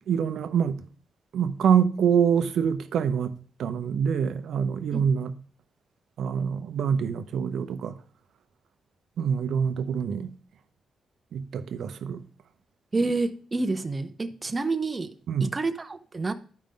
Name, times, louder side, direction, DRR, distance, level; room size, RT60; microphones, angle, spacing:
voice 1, 0.1-0.8 1.3-3.3 3.6-5.3 6.2-7.9 9.2-10.3 11.3-12.2 15.3-15.5, right 7 dB, 75° right, 0.6 m, -25 dB
voice 2, 12.9-15.2 15.4-16.3, right 3 dB, 25° right, 0.6 m, -28 dB
11.5 x 5.1 x 3.7 m
cardioid pair, 120°, 0 cm